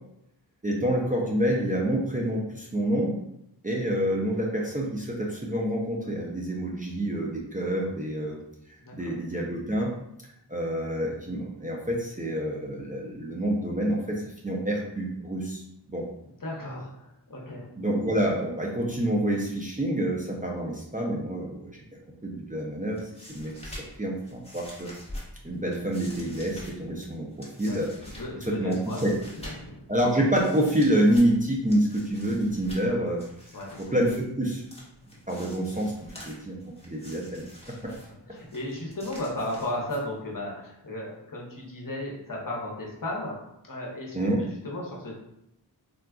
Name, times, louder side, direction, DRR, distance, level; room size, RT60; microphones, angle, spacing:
voice 1, 0.6-3.1 3.6-8.4 8.7-9.9 10.5-15.6 15.9-16.0 17.8-21.8 22.2-23.7 24.0-24.9 25.4-27.9 28.4-29.1 29.9-33.2 33.8-34.6 35.3-37.4 37.8-37.9 44.1-44.4, right 1 dB, 20° right, -3 dB, 0.4 m, -27 dB
voice 2, 8.8-9.1 16.4-17.7 27.7-29.0 29.3-29.9 33.5-33.8 37.8-38.0 38.3-43.3 43.6-45.1, left 1 dB, 50° left, -3 dB, 0.8 m, -35 dB
sound 1, 22.8-40.4, left 1 dB, 15° left, 1.0 m, -47 dB
3.7 x 2.3 x 2.3 m, 0.80 s
wide cardioid pair, 40°, 42 cm